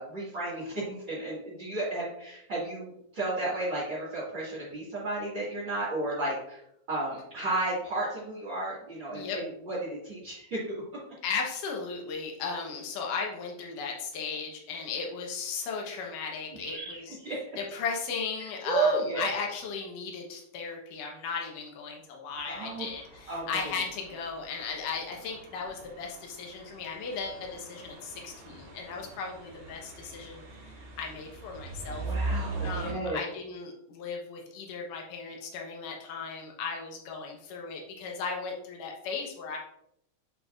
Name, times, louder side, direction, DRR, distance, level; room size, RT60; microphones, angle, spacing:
voice 1, 0.0-6.6 6.9-10.8 16.6-17.4 18.6-19.3 22.5-22.9 23.3-23.6 31.9-33.2, right 2 dB, 40° right, -9 dB, 2.5 m, -33 dB
voice 2, 11.2-17.2 17.6-30.4 31.0-32.0 32.6-39.6, left 5 dB, 80° left, 0 dB, 2.7 m, -36 dB
sound 1, 22.3-32.9, right 2 dB, 65° right, 2.6 m, -40 dB
8.6 x 5.3 x 2.5 m, 0.76 s
omnidirectional pair, 3.7 m